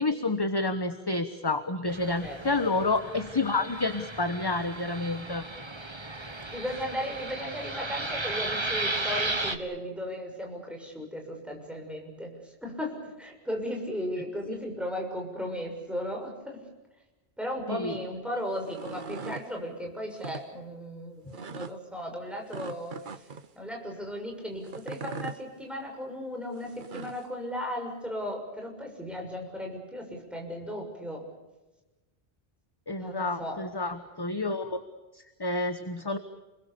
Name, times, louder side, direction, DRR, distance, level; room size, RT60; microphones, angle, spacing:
voice 1, 0.0-5.5 17.7-18.0 32.9-34.8 35.1-36.2, left 2 dB, 20° left, 9 dB, 1.2 m, -29 dB
Fixed-wing aircraft airplane, 1.9-9.6, right 2 dB, 25° right, 1.5 m, -35 dB
voice 2, 2.2-2.7 6.5-16.6 17.4-23.3 23.5-31.2 33.0-33.6, equal, ahead, 2 dB, 6.5 m, -36 dB
sound 1, 18.5-19.5 20.1-20.4 21.3-21.7 22.5-23.5 24.7-25.4 26.6-27.3, right 5 dB, 50° right, 1.1 m, -40 dB
29.0 x 22.0 x 6.9 m, 1.1 s
omnidirectional pair, 1.1 m